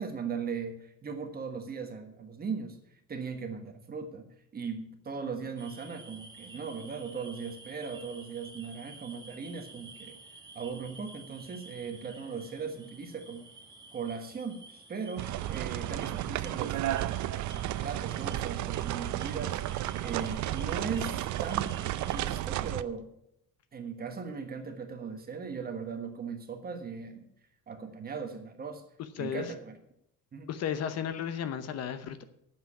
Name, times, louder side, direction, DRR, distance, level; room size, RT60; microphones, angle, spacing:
voice 1, 0.0-2.8 3.1-4.3 4.5-10.2 10.5-13.4 13.9-23.1 23.7-27.2 27.7-28.8 29.2-29.7 30.3-30.5, right 5 dB, 30° right, 6 dB, 1.4 m, -38 dB
sound 1, 5.6-22.4, right 3 dB, 15° right, 1.5 m, -51 dB
sound 2, 15.2-22.8, right 13 dB, 65° right, 0.6 m, -33 dB
voice 2, 29.2-29.5 30.5-32.2, left 8 dB, 50° left, 11 dB, 0.9 m, -34 dB
9.3 x 7.6 x 8.6 m, 0.78 s
cardioid pair, 170°, 32 cm